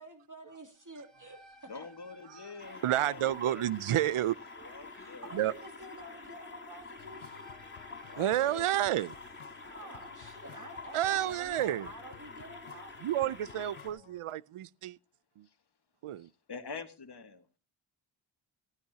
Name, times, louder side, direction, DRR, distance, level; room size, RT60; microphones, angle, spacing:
voice 1, 0.0-1.9 4.9-7.5 9.6-13.3, right 1 dB, 35° right, 2.7 m, -49 dB
sound 1, 0.8-12.2, equal, ahead, 3.0 m, -61 dB
voice 2, 1.7-3.7 4.6-5.3 8.1-8.7 16.2-17.4, left 5 dB, 50° left, 1.7 m, -46 dB
sound 2, 2.6-13.9, left 3 dB, 25° left, 4.5 m, -48 dB
voice 3, 2.8-4.7 5.3-5.5 8.2-9.1 10.9-11.9 13.0-15.0 15.4-15.5 16.0-16.3, right 12 dB, 85° right, 0.6 m, -30 dB
sound 3, 7.0-14.2, left 10 dB, 65° left, 0.8 m, -56 dB
16.5 x 15.0 x 2.8 m
wide cardioid pair, 85°, 50 cm